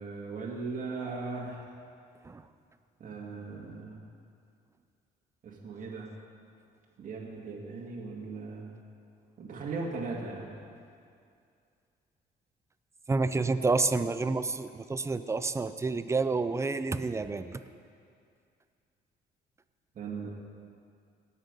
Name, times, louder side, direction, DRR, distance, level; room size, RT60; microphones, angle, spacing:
voice 1, 0.0-1.7 3.0-4.0 5.4-6.1 7.0-8.7 9.4-10.6 19.9-20.3, right 4 dB, 50° right, -3 dB, 2.0 m, -38 dB
voice 2, 13.1-17.6, right 3 dB, 15° right, 12 dB, 0.5 m, -29 dB
18.0 x 6.5 x 5.3 m, 2.4 s
cardioid pair, 110°, 18 cm